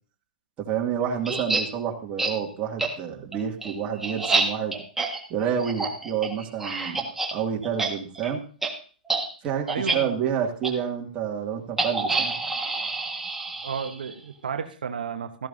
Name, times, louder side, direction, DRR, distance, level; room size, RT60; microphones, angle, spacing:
voice 1, 0.6-4.8 5.3-8.4 9.4-12.3, right 8 dB, 30° right, 0 dB, 2.4 m, -29 dB
sound 1, 1.2-1.6 2.2-2.3 2.8-2.9 3.3-7.3 7.6-8.3 8.6-8.7 9.1-9.2 9.7-10.0 10.6-10.7 11.8-14.1, right 3 dB, 5° right, 1.7 m, -27 dB
voice 2, 9.7-10.4 13.6-15.5, right 6 dB, 80° right, 6 dB, 1.1 m, -32 dB
14.0 x 12.0 x 2.8 m, 0.40 s
hypercardioid pair, 130°, 5 cm